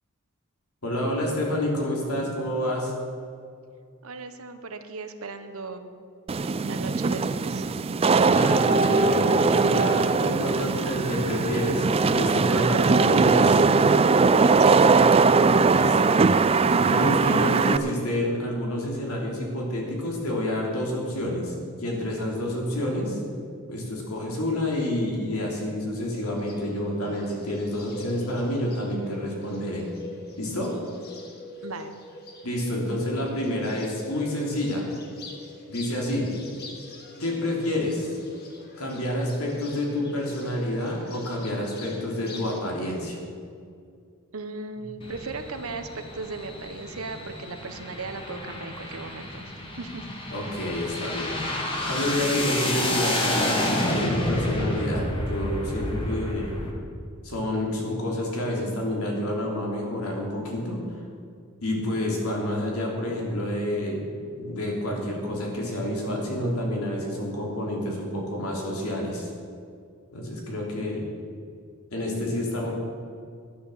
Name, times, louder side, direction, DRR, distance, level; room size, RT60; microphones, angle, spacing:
voice 1, 0.8-2.9 8.2-13.6 15.7-16.2 16.7-21.5 21.8-23.3 23.7-29.8 30.4-30.7 32.4-34.8 35.7-36.3 37.2-38.1 38.8-43.2 50.3-51.4 51.9-56.6 57.2-60.8 61.6-69.3 70.1-71.1 71.9-72.7, left 1 dB, 90° left, -1 dB, 3.3 m, -28 dB
voice 2, 4.0-5.9 6.6-7.7 14.6-15.0 31.6-31.9 44.3-50.1, right 3 dB, 70° right, 8 dB, 1.0 m, -37 dB
Wind / Rain, 6.3-17.8, right 4 dB, 25° right, 0.4 m, -20 dB
Bird, 26.1-42.6, left 2 dB, 45° left, 1.8 m, -44 dB
sound 1, 45.0-56.7, left 1 dB, 25° left, 1.7 m, -30 dB
12.0 x 9.9 x 7.2 m, 2.3 s
head